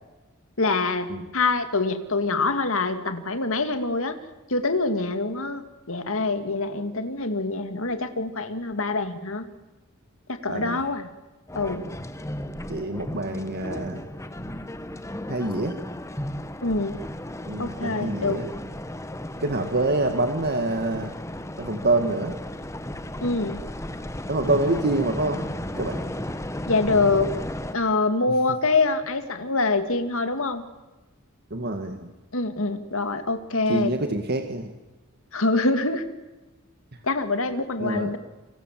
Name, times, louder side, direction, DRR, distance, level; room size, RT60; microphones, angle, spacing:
voice 1, 0.6-4.2 4.5-5.6 5.9-9.5 10.3-11.1 11.5-11.8 16.6-17.0 17.6-18.4 23.2-23.6 26.7-27.3 27.7-30.6 32.3-33.9 35.3-36.0 37.0-38.2, left 3 dB, 65° left, 8 dB, 2.5 m, -25 dB
voice 2, 10.5-10.8 12.7-14.0 15.3-15.8 17.5-18.5 19.4-21.1 21.6-22.3 24.3-25.4 25.8-26.0 31.5-32.1 33.7-34.7 37.8-38.1, right 2 dB, 50° right, 6 dB, 1.9 m, -26 dB
sound 1, 11.5-27.7, left 1 dB, 15° left, 1.3 m, -34 dB
28.5 x 26.0 x 7.6 m, 1.1 s
head